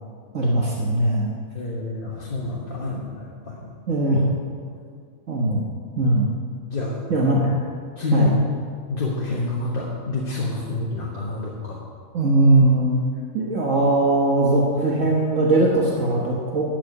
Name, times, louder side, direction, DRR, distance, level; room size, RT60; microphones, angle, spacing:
voice 1, 0.3-1.3 3.9-4.2 5.3-5.6 6.0-6.4 7.1-7.6 8.1-8.3 12.1-13.0 13.3-16.6, right 2 dB, 65° right, -3 dB, 1.6 m, -20 dB
voice 2, 1.5-3.7 4.6-4.7 6.7-7.3 8.0-8.3 8.9-11.8, left 2 dB, 40° left, -4 dB, 1.5 m, -27 dB
12.5 x 5.8 x 8.0 m, 2.1 s
omnidirectional pair, 1.4 m